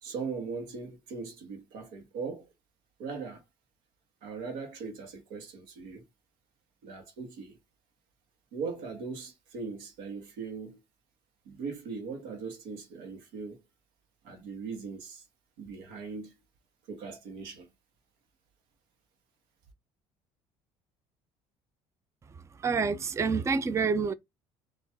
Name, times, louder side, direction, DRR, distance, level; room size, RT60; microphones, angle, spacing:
voice 1, 0.0-2.5 3.0-3.4 4.2-6.0 6.8-7.6 8.5-10.8 11.4-13.6 14.2-15.2 15.6-16.3 16.9-17.7, right 5 dB, 85° right, 1.5 m, -39 dB
voice 2, 22.6-24.1, right 5 dB, 20° right, 0.5 m, -27 dB
4.5 x 2.9 x 3.5 m
supercardioid pair, 85°, 14 cm